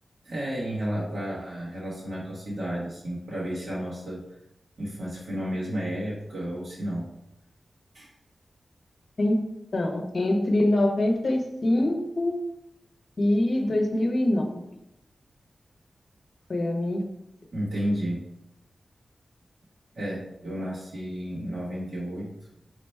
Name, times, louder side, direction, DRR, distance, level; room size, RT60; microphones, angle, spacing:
voice 1, 0.2-4.2 4.8-7.1 7.9-8.1 17.5-18.2 19.9-22.3, equal, 75° right, -7 dB, 1.2 m, -32 dB
voice 2, 9.7-12.4 13.2-14.4 16.5-17.0, left 1 dB, 55° left, 2 dB, 0.7 m, -24 dB
4.9 x 2.2 x 4.5 m, 0.81 s
wide cardioid pair, 105°, 0 cm